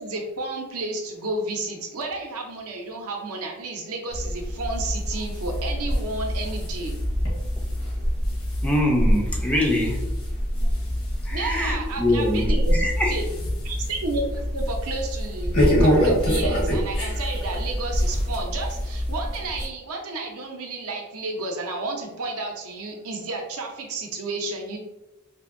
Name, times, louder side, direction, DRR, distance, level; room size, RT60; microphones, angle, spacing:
voice 1, 0.0-7.0 10.6-10.7 11.3-12.8 13.1-13.2 13.6-24.8, right 2 dB, 75° right, 2 dB, 0.6 m, -32 dB
sound 1, 4.1-19.7, equal, 70° left, 0.9 m, -25 dB
voice 2, 8.6-10.0 11.2-13.2, left 1 dB, 5° left, 0 dB, 0.4 m, -24 dB
2.7 x 2.6 x 2.5 m, 0.97 s
head